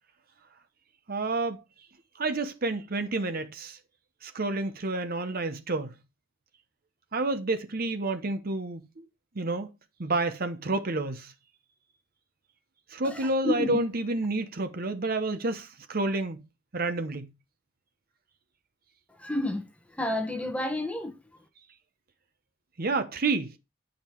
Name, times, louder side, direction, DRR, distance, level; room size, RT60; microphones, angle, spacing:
voice 1, 1.1-1.6 2.2-3.8 4.2-5.9 7.1-8.8 9.4-9.7 10.0-11.3 12.9-16.4 16.7-17.3 22.8-23.5, right 2 dB, 50° right, 0.9 m, -29 dB
voice 2, 13.0-13.8 19.2-19.6 20.0-21.1, left 1 dB, 5° left, 1.1 m, -30 dB
8.9 x 5.2 x 4.5 m
head